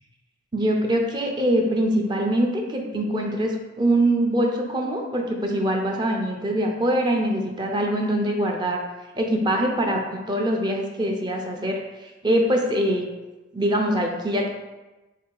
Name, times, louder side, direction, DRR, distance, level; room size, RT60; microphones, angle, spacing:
voice 1, 0.5-8.8 9.2-13.1 13.5-14.5, right 1 dB, 25° right, 1 dB, 0.4 m, -23 dB
3.7 x 2.7 x 3.8 m, 1.1 s
head